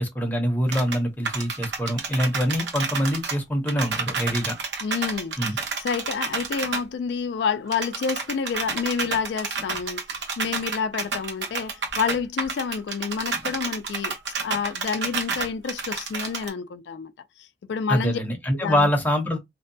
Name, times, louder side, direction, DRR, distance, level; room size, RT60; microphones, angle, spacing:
voice 1, 0.0-4.5 5.4-5.6 17.9-19.4, equal, 10° left, 0.6 m, -24 dB
sound 1, 0.7-1.0 1.2-3.4 3.7-6.8 7.7-16.5, right 5 dB, 85° right, 0.9 m, -30 dB
voice 2, 4.8-5.4 5.8-14.1 14.4-17.1 17.4-18.2 18.6-18.9, left 6 dB, 80° left, 0.3 m, -29 dB
2.6 x 2.1 x 2.6 m
head